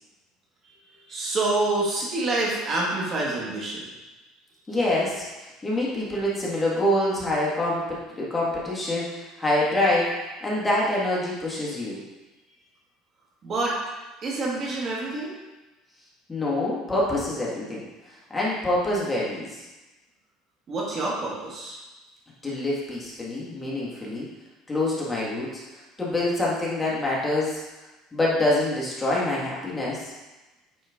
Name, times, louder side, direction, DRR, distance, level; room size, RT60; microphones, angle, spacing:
voice 1, 1.1-3.8 13.4-13.8 14.2-15.4 20.7-21.8, right 2 dB, 35° right, -3 dB, 1.8 m, -27 dB
voice 2, 4.7-5.2 5.6-10.2 10.4-12.0 16.3-19.6 22.4-24.3 24.7-25.6 26.0-27.6 28.1-30.0, left 1 dB, 15° left, -5 dB, 1.6 m, -26 dB
8.9 x 4.3 x 3.6 m, 1.1 s
cardioid pair, 135°, 0 cm